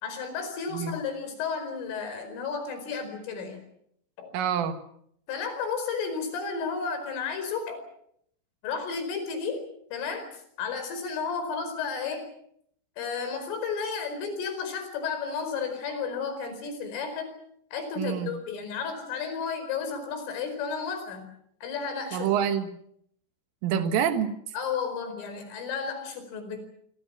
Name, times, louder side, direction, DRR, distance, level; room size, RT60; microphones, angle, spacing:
voice 1, 0.0-3.6 4.2-4.3 5.3-7.8 8.6-9.6 9.9-12.3 13.0-17.4 17.7-21.3 21.6-22.3 24.5-26.6, left 5 dB, 80° left, 8 dB, 7.3 m, -32 dB
voice 2, 4.3-4.8 18.0-18.3 22.1-22.7 23.6-24.4, right 8 dB, 85° right, 8 dB, 4.2 m, -26 dB
26.0 x 25.5 x 6.3 m, 0.69 s
omnidirectional pair, 5.7 m